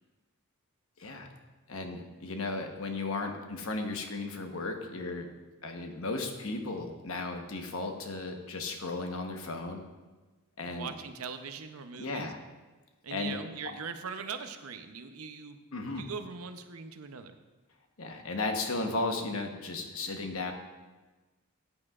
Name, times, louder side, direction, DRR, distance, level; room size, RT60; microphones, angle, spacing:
voice 1, 1.7-5.3 5.6-9.8 10.6-10.9 12.0-12.4 13.1-13.4 15.7-16.1 18.0-20.5, left 3 dB, 70° left, 4 dB, 1.1 m, -35 dB
voice 2, 10.7-12.3 13.0-15.6 16.0-17.3, right 5 dB, 80° right, 8 dB, 0.7 m, -41 dB
13.5 x 8.7 x 2.4 m, 1.2 s
head